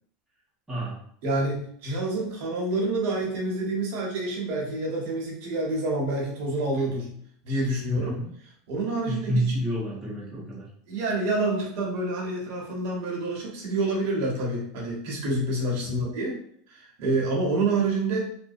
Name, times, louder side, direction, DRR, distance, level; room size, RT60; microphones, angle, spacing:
voice 1, 0.7-1.0 7.9-8.3 9.1-10.7 15.8-16.0, right 1 dB, 10° right, -9 dB, 0.8 m, -29 dB
voice 2, 1.2-7.2 7.4-8.1 8.7-9.5 10.9-16.4 16.7-18.3, right 2 dB, 65° right, -3 dB, 1.0 m, -28 dB
2.5 x 2.1 x 2.6 m, 0.66 s
supercardioid pair, 125°, 0 cm